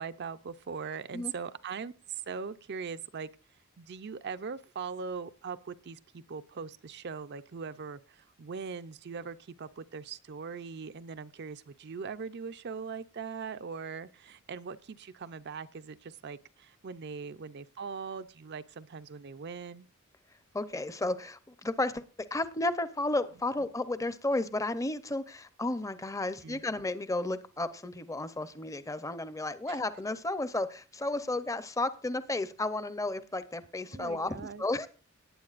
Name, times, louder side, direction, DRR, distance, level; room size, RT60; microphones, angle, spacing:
voice 1, 0.0-3.3 3.8-19.9 26.4-26.6 29.7-29.8 33.9-34.6, right 5 dB, 50° right, 12 dB, 0.5 m, -41 dB
voice 2, 20.5-22.0 22.3-34.9, left 2 dB, 15° left, 13 dB, 0.6 m, -33 dB
18.0 x 9.2 x 2.5 m, 0.36 s
head